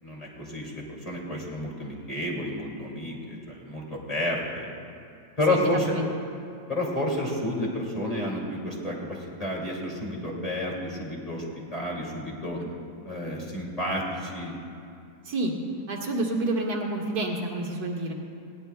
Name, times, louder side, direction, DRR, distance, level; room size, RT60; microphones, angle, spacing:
voice 1, 0.0-4.7 5.4-6.0 6.7-11.4 11.7-12.6 13.0-14.6, left 1 dB, 25° left, -3 dB, 2.5 m, -30 dB
voice 2, 5.5-6.1 15.3-15.5 15.9-18.1, right 2 dB, 90° right, 0 dB, 2.0 m, -29 dB
19.5 x 17.0 x 2.2 m, 2.5 s
omnidirectional pair, 1.6 m